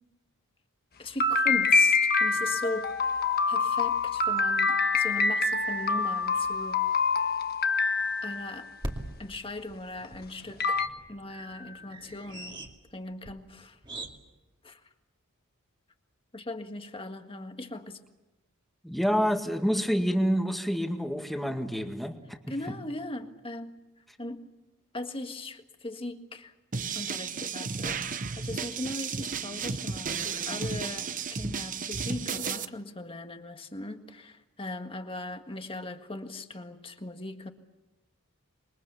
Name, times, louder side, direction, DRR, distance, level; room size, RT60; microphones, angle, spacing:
voice 1, 1.0-2.9 3.5-6.8 8.2-8.7 9.2-10.8 11.1-12.6 12.9-13.8 14.6-14.8 16.3-18.0 22.5-23.8 24.2-24.5 24.9-26.5 26.9-37.5, left 2 dB, 25° left, 6 dB, 1.8 m, -39 dB
sound 1, 1.2-8.6 10.0-10.1 10.6-10.9, left 4 dB, 45° left, 1.4 m, -25 dB
sound 2, 4.4-4.5 5.1-5.2 5.5-5.6 8.8-14.2, right 1 dB, 20° right, 2.5 m, -42 dB
voice 2, 18.8-22.7, equal, ahead, 4 dB, 2.0 m, -28 dB
sound 3, 26.7-32.6, right 5 dB, 35° right, 0.9 m, -33 dB
27.0 x 23.0 x 7.0 m, 1.1 s
head